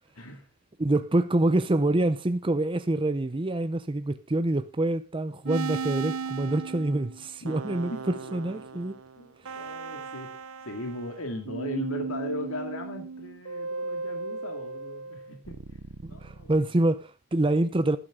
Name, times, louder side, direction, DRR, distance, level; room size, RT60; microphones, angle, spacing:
voice 1, 0.1-0.5 7.4-8.6 9.2-10.4 10.7-15.8 16.1-16.6, left 1 dB, 70° left, 2.2 m, -38 dB
voice 2, 0.8-9.0 9.5-9.7 16.0-18.0, right 2 dB, 25° right, 0.6 m, -26 dB
sound 1, 5.4-11.2 11.5-16.6, right 4 dB, 75° right, 0.7 m, -36 dB
12.5 x 12.0 x 3.7 m
head